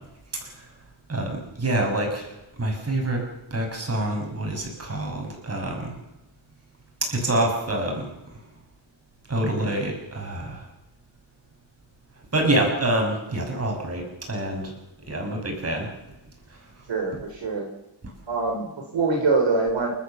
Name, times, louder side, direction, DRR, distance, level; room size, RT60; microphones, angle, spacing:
voice 1, 1.1-2.3 2.6-3.2 3.5-5.9 7.0-8.1 9.3-10.6 12.3-14.0 14.3-14.7 15.1-15.9, right 1 dB, 30° right, 2 dB, 6.5 m, -26 dB
voice 2, 16.9-17.7 18.3-19.9, right 3 dB, 65° right, 2 dB, 3.8 m, -24 dB
29.0 x 13.5 x 7.1 m, 0.97 s
wide cardioid pair, 150°, 47 cm